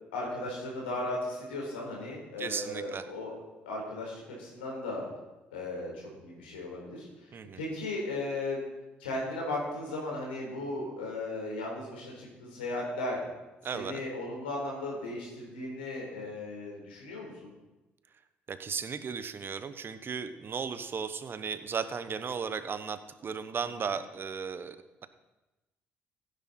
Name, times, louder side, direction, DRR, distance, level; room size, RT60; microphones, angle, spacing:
voice 1, 0.1-3.3 3.7-5.0 5.5-7.1 7.6-8.6 9.0-13.2 13.7-17.5 23.8-23.9, left 2 dB, 85° left, -2 dB, 4.4 m, -36 dB
voice 2, 2.4-3.0 7.3-7.6 13.6-14.0 18.5-24.8, right 6 dB, 45° right, 11 dB, 1.1 m, -35 dB
15.5 x 10.0 x 4.4 m, 1.0 s
hypercardioid pair, 55°, 5 cm